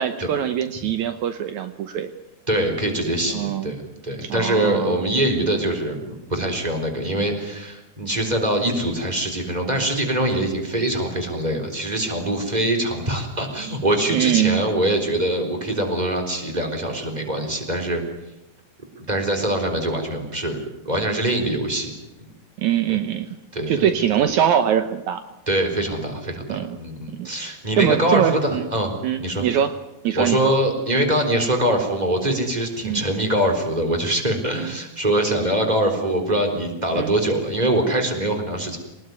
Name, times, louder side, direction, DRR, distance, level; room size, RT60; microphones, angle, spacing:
voice 1, 0.0-2.1 3.3-3.7 4.2-5.0 14.1-14.6 22.6-23.3 23.7-25.2 26.5-26.8 27.2-27.3 27.8-28.7 29.0-29.7 30.0-30.5 32.8-33.0 34.5-34.7 37.0-37.1, right 9 dB, 70° right, 9 dB, 2.3 m, -22 dB
voice 2, 2.5-18.0 19.0-21.9 22.2-22.3 22.9-23.0 23.5-24.0 25.5-29.0 29.2-29.5 30.1-38.8, right 1 dB, 10° right, 4 dB, 3.9 m, -23 dB
24.0 x 19.5 x 9.6 m, 0.94 s
omnidirectional pair, 3.6 m